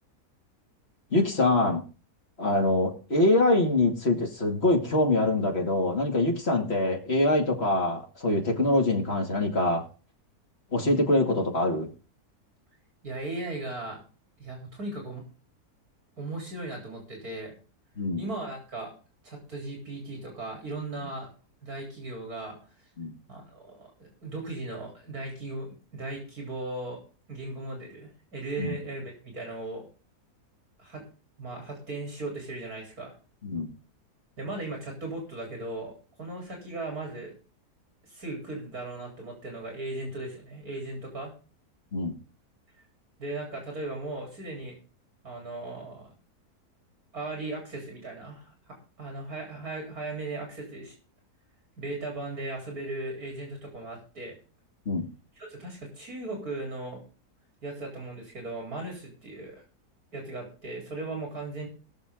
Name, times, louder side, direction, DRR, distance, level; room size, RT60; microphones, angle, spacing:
voice 1, 1.1-1.8 2.4-9.9 10.7-11.9 18.0-18.2 23.0-23.1 28.6-28.8 33.4-33.7 41.9-42.2 54.9-55.1, left 2 dB, 40° left, 1 dB, 2.6 m, -24 dB
voice 2, 13.0-14.0 14.4-15.2 16.2-17.5 18.2-18.9 19.2-21.3 21.6-22.6 23.3-27.0 27.3-29.9 30.8-31.0 31.4-33.1 34.4-37.3 38.1-41.3 43.2-44.8 45.2-46.1 47.1-48.5 49.0-50.9 51.8-54.3 55.4-57.0 57.6-59.6 60.1-61.7, right 2 dB, 70° right, 1 dB, 4.2 m, -37 dB
20.5 x 6.9 x 3.7 m, 0.35 s
omnidirectional pair, 1.6 m